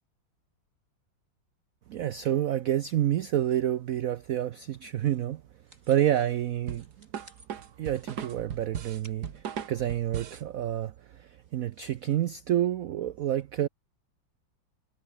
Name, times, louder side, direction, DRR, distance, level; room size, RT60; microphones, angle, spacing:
voice 1, 1.9-5.4 5.9-6.9 7.8-13.7, right 11 dB, 85° right, 0.7 m, -28 dB
sound 1, 3.6-12.4, right 2 dB, 35° right, 7.6 m, -63 dB
sound 2, 6.7-10.5, right 8 dB, 55° right, 1.8 m, -38 dB
omnidirectional pair, 2.2 m